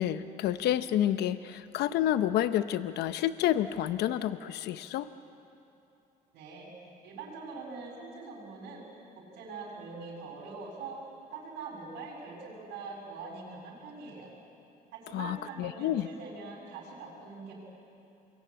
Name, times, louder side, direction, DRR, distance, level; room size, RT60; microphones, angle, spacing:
voice 1, 0.0-5.1 15.1-16.1, left 12 dB, 75° left, 12 dB, 0.8 m, -29 dB
voice 2, 6.3-6.7 7.0-8.8 9.2-11.0 11.3-14.3 14.9-17.5, right 4 dB, 90° right, -4 dB, 6.5 m, -43 dB
28.5 x 22.5 x 8.7 m, 2.8 s
cardioid pair, 110°, 17 cm